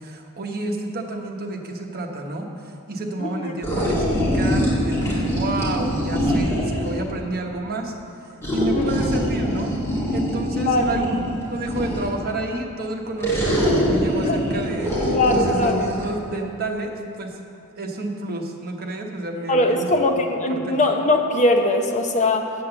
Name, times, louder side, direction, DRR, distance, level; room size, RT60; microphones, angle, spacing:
voice 1, 0.0-7.9 8.5-9.7 10.1-11.2 11.5-14.9 15.3-17.4 17.8-19.9 20.5-20.8, right 2 dB, 45° right, 2 dB, 1.0 m, -30 dB
voice 2, 3.2-3.5 8.7-9.1 10.5-10.9 14.3-14.4 15.0-15.8 19.5-22.5, left 2 dB, 35° left, 4 dB, 0.7 m, -21 dB
sound 1, 3.6-7.0 8.4-12.2 13.2-16.1, equal, 10° left, 2.1 m, -23 dB
8.5 x 7.8 x 6.8 m, 2.6 s
head